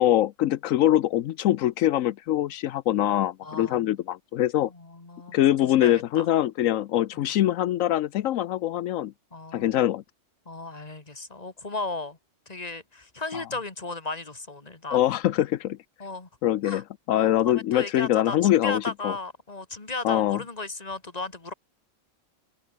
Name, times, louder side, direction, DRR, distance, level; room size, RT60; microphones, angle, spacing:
voice 1, 0.0-4.7 5.3-9.1 9.5-10.0 13.3-13.4 14.9-15.8 16.4-19.1 20.0-20.4, left 13 dB, 85° left, 1.0 m, -23 dB
voice 2, 3.4-3.9 4.7-5.4 5.6-6.3 7.1-7.2 9.3-9.8 10.5-12.2 12.5-15.0 16.0-16.3 16.6-16.8 17.1-21.5, left 3 dB, 30° left, 2.4 m, -35 dB
omnidirectional pair, 1.3 m